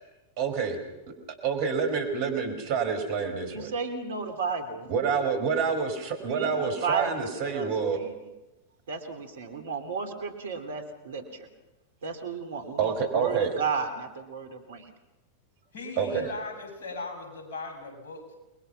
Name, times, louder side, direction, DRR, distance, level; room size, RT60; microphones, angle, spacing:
voice 1, 0.4-0.8 1.1-1.2 1.4-3.7 4.9-8.0 12.8-13.5 16.0-16.3, right 6 dB, 50° right, 5 dB, 5.5 m, -28 dB
voice 2, 3.5-4.9 6.2-8.1 8.9-11.5 12.0-14.9, right 5 dB, 65° right, 8 dB, 3.3 m, -33 dB
voice 3, 15.7-18.4, left 3 dB, 60° left, 3 dB, 8.0 m, -38 dB
29.5 x 22.5 x 6.0 m, 1.0 s
figure-of-eight pair, 90°, 0 cm